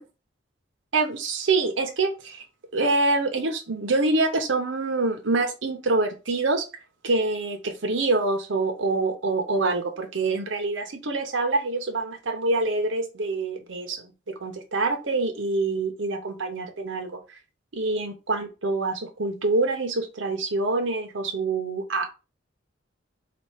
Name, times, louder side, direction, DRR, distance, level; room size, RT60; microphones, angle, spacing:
voice 1, 0.9-2.4 2.7-6.6 7.0-17.4 17.7-22.1, right 3 dB, 80° right, 4 dB, 0.8 m, -26 dB
4.2 x 2.5 x 4.8 m, 0.30 s
head